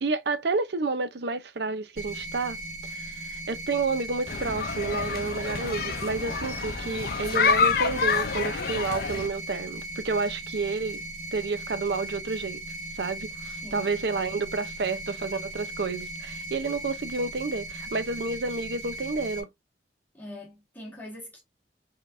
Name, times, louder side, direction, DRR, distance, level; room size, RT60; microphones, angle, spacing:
voice 1, 0.0-2.6 2.8-11.0 11.3-12.6 13.0-19.5, right 3 dB, 65° right, 0.7 m, -30 dB
sound 1, 2.0-19.4, right 2 dB, 35° right, 2.9 m, -38 dB
sound 2, 4.3-9.3, left 5 dB, 55° left, 0.6 m, -27 dB
voice 2, 20.1-21.4, left 1 dB, 10° left, 1.6 m, -42 dB
5.3 x 3.9 x 2.6 m
head